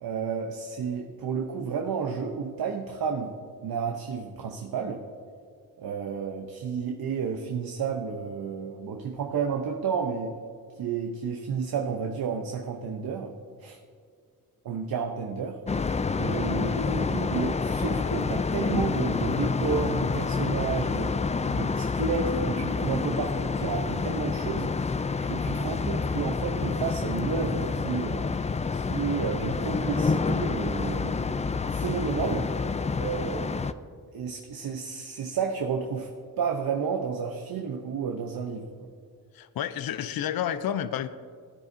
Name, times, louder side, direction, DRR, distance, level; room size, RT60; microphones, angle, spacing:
voice 1, 0.0-3.3 3.6-5.0 5.8-10.4 10.8-13.3 13.6-13.8 14.6-15.6 16.2-21.2 21.5-24.7 25.2-28.2 28.7-32.5 33.0-33.7 34.1-36.1 36.4-38.7, right 6 dB, 80° right, 3 dB, 0.8 m, -31 dB
sound 1, 15.7-33.7, left 4 dB, 20° left, 0.3 m, -28 dB
voice 2, 39.3-41.1, left 10 dB, 75° left, 13 dB, 0.5 m, -30 dB
16.5 x 9.9 x 2.7 m, 2.1 s
cardioid pair, 70°, 36 cm